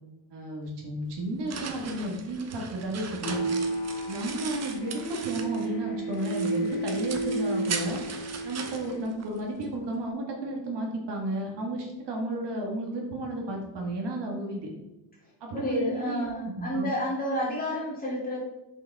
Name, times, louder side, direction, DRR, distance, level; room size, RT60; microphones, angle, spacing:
voice 1, 0.3-3.4 4.1-8.0 8.4-14.7 15.4-16.9, right 1 dB, 60° right, 1 dB, 1.8 m, -33 dB
sound 1, 1.1-5.8 6.1-9.7, right 5 dB, 35° right, 0.8 m, -39 dB
sound 2, 3.2-9.0, right 2 dB, 60° left, 1.0 m, -32 dB
voice 2, 15.5-18.4, equal, 20° left, -5 dB, 2.5 m, -30 dB
6.9 x 5.5 x 3.5 m, 0.98 s
cardioid pair, 150°, 47 cm